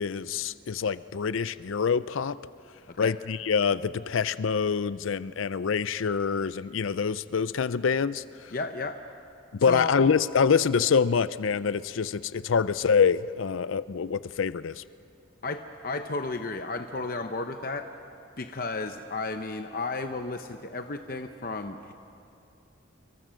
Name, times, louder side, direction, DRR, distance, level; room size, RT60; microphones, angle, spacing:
voice 1, 0.0-2.4 3.0-8.5 9.5-14.8, left 6 dB, 80° left, 16 dB, 0.5 m, -26 dB
voice 2, 8.5-9.0 9.7-9.9 15.4-17.9 18.4-21.9, left 3 dB, 45° left, 7 dB, 0.8 m, -33 dB
28.0 x 23.0 x 6.4 m, 2.7 s
head